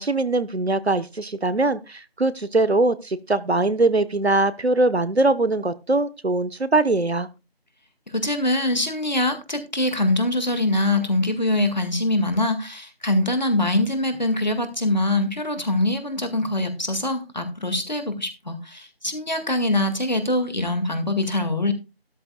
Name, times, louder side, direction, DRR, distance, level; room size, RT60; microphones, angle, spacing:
voice 1, 0.0-7.3, right 2 dB, 80° right, 14 dB, 1.2 m, -22 dB
voice 2, 8.1-21.7, left 1 dB, 45° left, 8 dB, 2.0 m, -23 dB
13.0 x 13.0 x 2.3 m, 0.28 s
figure-of-eight pair, 180°, 31 cm